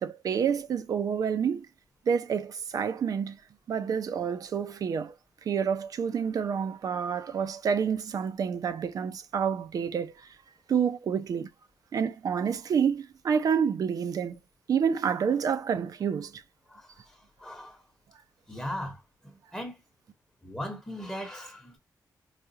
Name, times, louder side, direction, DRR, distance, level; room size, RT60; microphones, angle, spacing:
voice 1, 0.0-1.7 2.1-3.4 3.7-5.1 5.4-10.4 10.7-11.5 11.9-14.4 14.7-16.4, right 7 dB, 60° right, 0.6 m, -28 dB
voice 2, 17.4-17.8 18.5-19.0 19.2-19.7 20.4-21.8, equal, 10° left, 1.1 m, -37 dB
5.0 x 2.4 x 2.8 m
wide cardioid pair, 145°, 7 cm